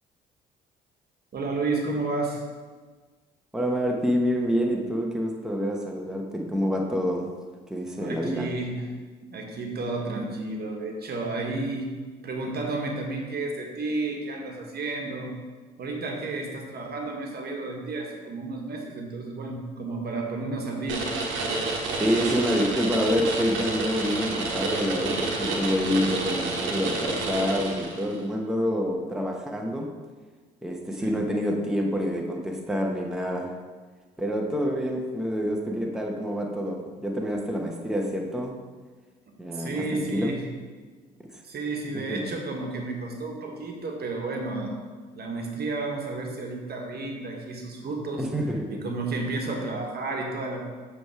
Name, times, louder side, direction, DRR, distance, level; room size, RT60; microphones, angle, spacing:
voice 1, 1.3-2.4 8.0-8.8 9.3-11.9 12.2-15.3 15.8-21.0 31.0-31.2 39.5-40.4 41.4-44.8 45.2-48.2 48.7-50.6, right 3 dB, 50° right, 1 dB, 1.3 m, -31 dB
voice 2, 3.5-7.3 7.7-8.5 22.0-29.9 30.6-33.5 34.2-38.5 39.4-40.3 41.9-42.2 48.2-48.8, equal, 5° right, 0 dB, 1.0 m, -27 dB
sound 1, 20.9-28.2, right 3 dB, 70° right, 1.1 m, -29 dB
7.6 x 3.5 x 4.7 m, 1.4 s
hypercardioid pair, 55°, 21 cm